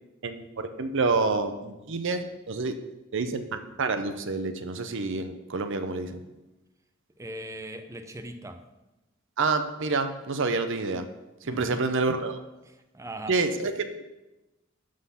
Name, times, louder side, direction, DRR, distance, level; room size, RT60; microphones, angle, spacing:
voice 1, 0.2-2.8 3.1-6.2 9.4-11.1 11.4-12.4 13.3-14.0, right 3 dB, 60° right, 9 dB, 0.7 m, -28 dB
voice 2, 7.2-8.6 11.4-11.8 12.7-13.4, right 1 dB, 15° right, 7 dB, 0.6 m, -40 dB
11.5 x 3.9 x 5.7 m, 1.0 s
head